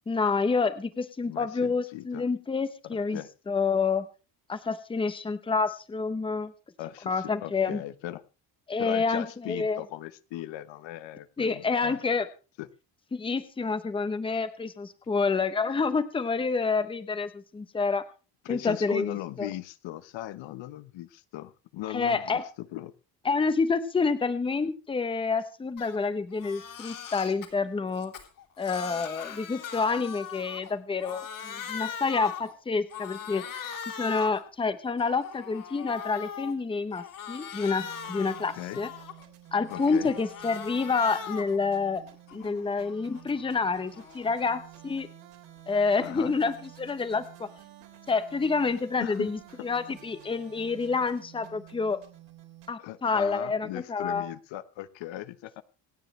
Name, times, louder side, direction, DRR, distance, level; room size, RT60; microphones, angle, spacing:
voice 1, 0.1-3.2 3.5-4.1 4.5-6.5 7.1-7.8 8.7-9.8 11.4-12.3 13.1-18.1 18.5-19.5 21.9-22.4 23.3-28.1 28.6-33.4 34.0-38.9 39.5-42.0 42.3-45.1 45.7-47.5 48.1-52.0 52.7-54.3, left 4 dB, 10° left, 12 dB, 0.9 m, -28 dB
voice 2, 1.3-2.2 2.8-3.3 6.8-8.2 8.8-12.0 12.6-12.7 18.4-22.9 38.3-38.8 39.7-40.1 46.0-46.3 49.0-49.3 49.6-49.7 52.8-55.6, left 14 dB, 85° left, 14 dB, 1.1 m, -38 dB
Crying sobbing, 25.8-26.0 26.3-27.5 27.9-30.7 31.0-32.5 32.9-34.4 34.9-36.5 36.9-39.2 39.6-41.6 42.0-44.3, left 8 dB, 45° left, 3.2 m, -40 dB
sound 1, 37.7-52.7, right 13 dB, 70° right, 3.8 m, -51 dB
27.0 x 9.5 x 3.2 m, 0.33 s
cardioid pair, 180°, 44 cm